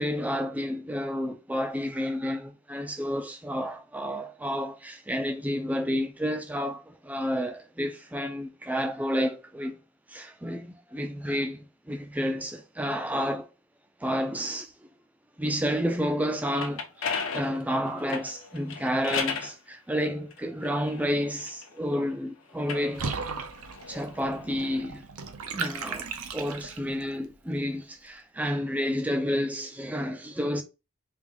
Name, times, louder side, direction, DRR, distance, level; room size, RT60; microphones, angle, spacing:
voice 1, 0.0-9.8 10.1-13.5 14.0-14.7 15.4-23.2 23.9-25.1 25.5-26.1 26.3-30.6, equal, 5° right, 0.3 m, -30 dB
sound 1, 16.3-19.6 20.3-22.0 22.5-24.8, left 5 dB, 65° left, 0.7 m, -36 dB
Water / Bathtub (filling or washing), 22.9-27.0, right 5 dB, 80° right, 0.6 m, -36 dB
3.4 x 2.5 x 3.5 m
head